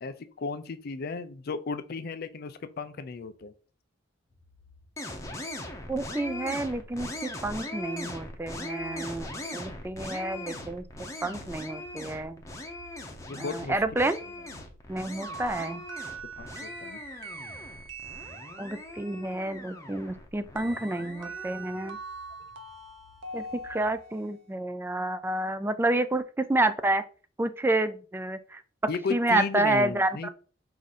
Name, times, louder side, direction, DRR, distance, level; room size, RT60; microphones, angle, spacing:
voice 1, 0.0-3.5 13.3-14.1 16.4-17.0 28.9-30.3, left 4 dB, 55° left, 0.5 m, -35 dB
sound 1, 4.3-24.0, left 2 dB, 75° left, 0.8 m, -57 dB
sound 2, 5.0-21.9, left 1 dB, 15° left, 0.7 m, -40 dB
voice 2, 5.9-12.4 13.4-14.2 14.9-15.8 18.6-22.0 23.3-27.0 27.4-28.6 29.1-30.3, right 2 dB, 10° right, 0.3 m, -29 dB
sound 3, 15.2-19.0 20.6-24.3, right 3 dB, 75° right, 0.7 m, -42 dB
4.8 x 2.6 x 4.1 m
head